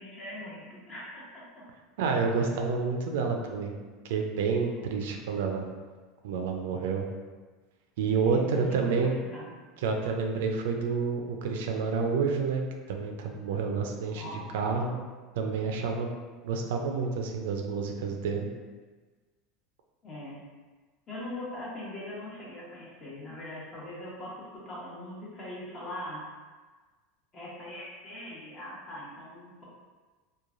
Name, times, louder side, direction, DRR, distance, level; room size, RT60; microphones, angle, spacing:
voice 1, 0.0-1.4 8.1-9.5 14.2-14.4 20.0-20.4 21.1-26.2 27.3-29.6, left 1 dB, 30° left, -6 dB, 1.0 m, -41 dB
voice 2, 2.0-3.8 4.0-5.7 6.2-7.1 8.0-9.1 9.8-15.0 15.4-16.1 16.4-18.5, right 5 dB, 80° right, 3 dB, 0.4 m, -29 dB
3.0 x 2.2 x 2.4 m, 1.3 s
supercardioid pair, 125°, 0 cm